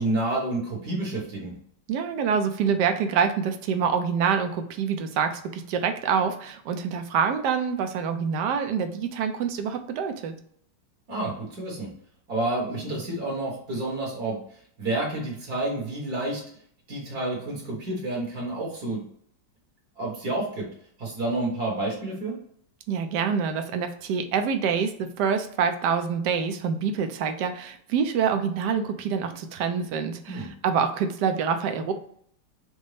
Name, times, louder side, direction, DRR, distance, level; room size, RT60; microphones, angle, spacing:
voice 1, 0.0-1.6 11.1-11.9 12.3-14.4 14.8-16.4 16.9-19.1 20.0-20.7 21.0-22.4 30.3-30.5, right 2 dB, 60° right, -3 dB, 1.8 m, -29 dB
voice 2, 1.9-10.3 22.9-31.9, right 6 dB, 75° right, 7 dB, 1.2 m, -26 dB
5.2 x 2.1 x 3.2 m, 0.63 s
omnidirectional pair, 1.9 m